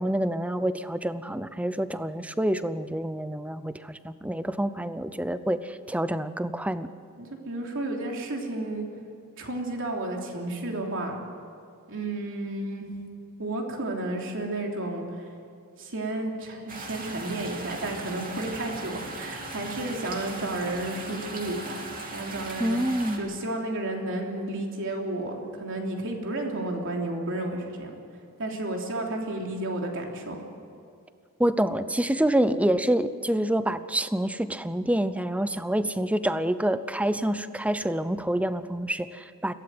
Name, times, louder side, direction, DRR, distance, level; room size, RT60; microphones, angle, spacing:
voice 1, 0.0-6.9 22.6-23.3 31.4-39.5, right 1 dB, 5° right, 13 dB, 0.6 m, -27 dB
voice 2, 7.2-8.8 9.4-11.2 11.9-12.9 13.4-15.3 15.8-22.8 23.2-27.9 28.4-30.4, right 2 dB, 60° right, 1 dB, 3.3 m, -32 dB
sound 1, 16.7-23.2, right 2 dB, 40° right, 2.9 m, -38 dB
22.5 x 16.5 x 7.9 m, 2.5 s
head